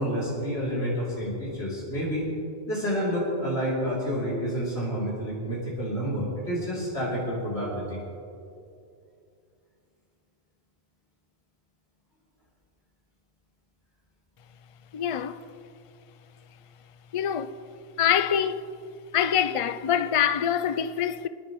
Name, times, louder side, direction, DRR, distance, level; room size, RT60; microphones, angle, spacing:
voice 1, 0.0-2.3 2.7-8.0, equal, 80° left, 3.5 m, -29 dB
voice 2, 14.9-15.4 17.1-17.5 18.0-18.7 19.1-21.3, left 9 dB, 45° left, 0.4 m, -25 dB
26.0 x 10.5 x 3.1 m
omnidirectional pair, 1.1 m